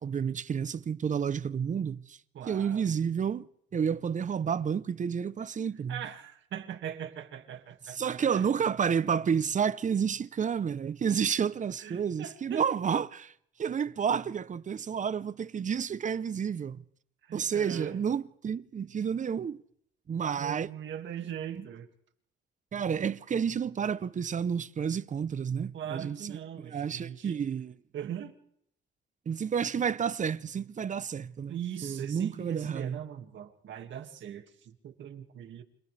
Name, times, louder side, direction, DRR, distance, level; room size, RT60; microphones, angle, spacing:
voice 1, 0.0-2.2 2.5-3.5 3.7-6.0 7.9-13.3 13.6-16.8 17.3-19.6 20.1-20.7 21.6-21.7 22.7-27.7 29.3-33.0, right 7 dB, 40° right, 0.8 m, -30 dB
voice 2, 2.3-3.0 5.8-8.5 11.8-12.6 17.2-18.0 20.4-21.9 25.7-27.4 27.9-28.4 31.5-35.6, right 9 dB, 70° right, 2.2 m, -40 dB
29.0 x 26.5 x 3.4 m
cardioid pair, 90°, 20 cm